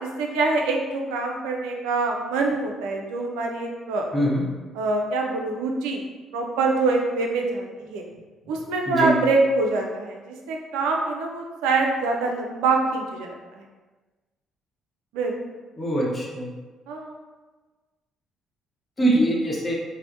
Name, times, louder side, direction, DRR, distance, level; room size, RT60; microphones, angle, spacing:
voice 1, 0.0-4.3 4.7-6.0 6.3-8.0 8.5-13.3 15.1-15.3 16.9-17.1, right 3 dB, 80° right, 1 dB, 0.3 m, -25 dB
voice 2, 4.1-4.4 8.9-9.1 15.8-16.5 19.0-19.7, right 1 dB, 30° left, -4 dB, 0.8 m, -22 dB
3.3 x 2.0 x 2.5 m, 1.3 s
hypercardioid pair, 50°, 0 cm